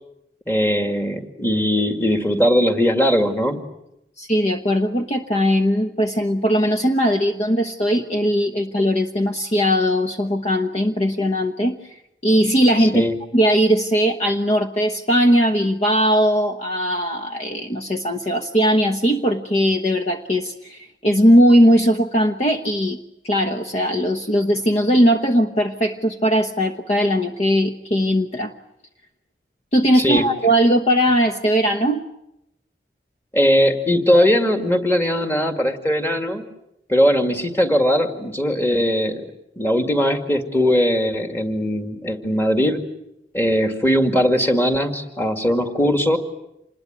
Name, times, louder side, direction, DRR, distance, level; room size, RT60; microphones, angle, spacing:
voice 1, 0.5-3.6 12.8-13.2 29.9-30.2 33.3-36.4 36.9-39.3 39.6-42.8 43.3-46.2, equal, 15° left, 6 dB, 2.2 m, -19 dB
voice 2, 4.2-11.8 12.2-23.0 23.2-28.5 29.7-32.1, equal, 35° left, 5 dB, 1.0 m, -19 dB
27.0 x 20.5 x 9.3 m, 0.85 s
head